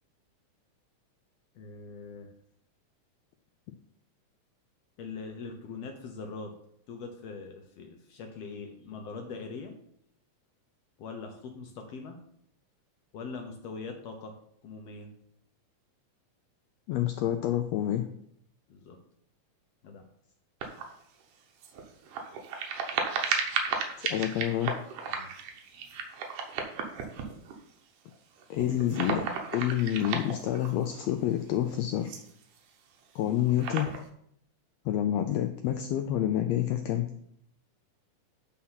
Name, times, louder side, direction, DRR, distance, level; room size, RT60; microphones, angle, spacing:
voice 1, 1.5-2.3 5.0-6.5 6.9-9.7 11.0-12.2 13.1-14.3 14.6-15.1 18.7-19.0 19.8-20.1 25.1-25.3 25.8-26.1, left 4 dB, 70° left, 4 dB, 1.7 m, -42 dB
voice 2, 16.9-18.1 24.0-24.8 28.5-29.2 29.5-32.1 33.1-33.9 34.8-37.1, left 11 dB, 90° left, 6 dB, 1.5 m, -28 dB
sound 1, 20.6-21.0 21.6-27.6 28.1-28.2 28.4-31.0 32.1-32.6 33.2-34.1, right 6 dB, 80° right, 2.5 m, -34 dB
8.4 x 4.4 x 5.7 m, 0.70 s
omnidirectional pair, 3.6 m